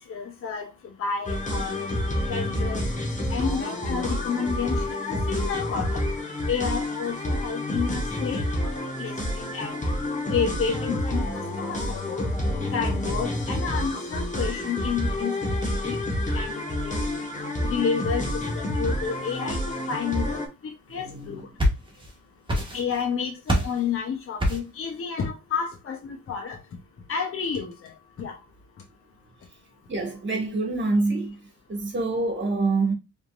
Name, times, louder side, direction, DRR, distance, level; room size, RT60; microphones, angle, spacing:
voice 1, 0.1-0.7 1.0-2.8 3.3-6.0 6.5-9.8 10.3-12.3 12.7-16.0 16.3-17.0 17.6-21.4 22.7-26.6 27.1-27.9 28.2-28.4, left 6 dB, 45° left, 0.9 m, -30 dB
sound 1, 1.2-20.5, left 1 dB, 25° left, 1.4 m, -28 dB
voice 2, 20.9-21.4 29.9-31.3 31.7-32.9, right 3 dB, 40° right, 2.0 m, -26 dB
sound 2, 21.2-22.1 22.5-23.1 23.5-23.8 24.4-24.8, equal, 15° right, 1.5 m, -25 dB
4.2 x 3.6 x 2.4 m
cardioid pair, 110°, 30 cm